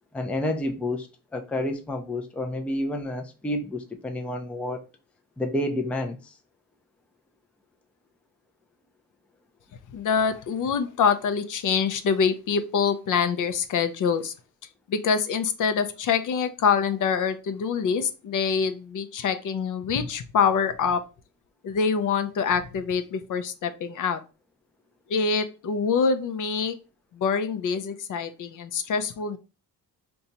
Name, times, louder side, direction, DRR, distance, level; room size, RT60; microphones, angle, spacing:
voice 1, 0.1-4.8 5.4-6.4, left 1 dB, 5° left, 0.4 m, -29 dB
voice 2, 9.9-14.3 14.9-21.0 21.6-24.2 25.1-26.8 27.1-29.4, left 6 dB, 55° left, 0.5 m, -25 dB
2.7 x 2.3 x 4.0 m
cardioid pair, 125°, 36 cm